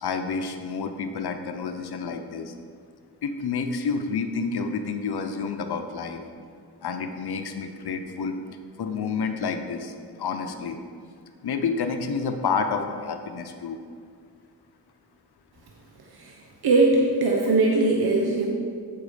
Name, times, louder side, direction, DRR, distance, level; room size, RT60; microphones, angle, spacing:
voice 1, 0.0-2.5 3.2-6.2 6.8-8.4 8.8-10.8 11.4-13.8, left 5 dB, 70° left, 7 dB, 0.8 m, -29 dB
voice 2, 16.6-18.5, right 3 dB, 65° right, -1 dB, 1.0 m, -20 dB
7.9 x 4.9 x 5.1 m, 2.2 s
cardioid pair, 50°, 40 cm